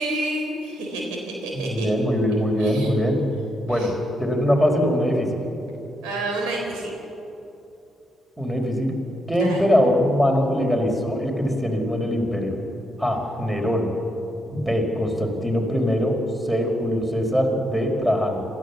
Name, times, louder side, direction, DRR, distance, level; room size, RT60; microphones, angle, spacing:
voice 1, 0.0-1.9 2.6-3.1 3.7-3.9 6.0-7.0 9.3-9.6, right 2 dB, 75° right, 1 dB, 4.1 m, -29 dB
voice 2, 1.5-3.2 3.6-3.9 4.2-5.4 8.4-8.9 9.3-12.5 13.0-13.9 14.5-16.2 16.4-18.4, equal, 5° right, 2 dB, 4.7 m, -22 dB
27.5 x 14.0 x 7.2 m, 2.9 s
hypercardioid pair, 45°, 0 cm